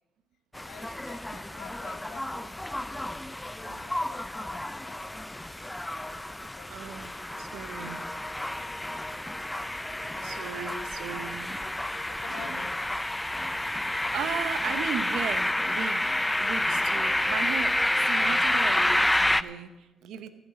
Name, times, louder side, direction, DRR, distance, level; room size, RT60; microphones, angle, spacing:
sound 1, 0.5-19.4, left 1 dB, 10° left, 0.4 m, -29 dB
voice 1, 0.7-3.1 3.5-5.2 6.5-7.8 8.5-8.9 10.1-10.7 12.1-12.7, left 8 dB, 85° left, 8 dB, 1.2 m, -50 dB
voice 2, 6.7-7.1 7.4-8.0 9.8-11.9 12.3-12.6 13.6-20.3, right 8 dB, 80° right, 12 dB, 0.8 m, -37 dB
14.0 x 6.9 x 6.8 m, 1.1 s
cardioid pair, 90°, 0 cm